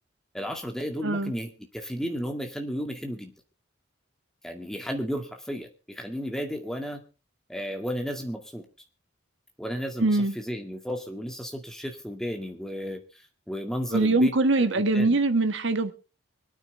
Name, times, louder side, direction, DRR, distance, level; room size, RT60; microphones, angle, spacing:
voice 1, 0.3-3.3 4.4-7.0 7.5-8.6 9.6-15.2, equal, ahead, 2.1 m, -33 dB
voice 2, 10.0-10.3 13.9-15.9, right 2 dB, 70° right, 1.5 m, -23 dB
25.5 x 9.1 x 3.4 m
head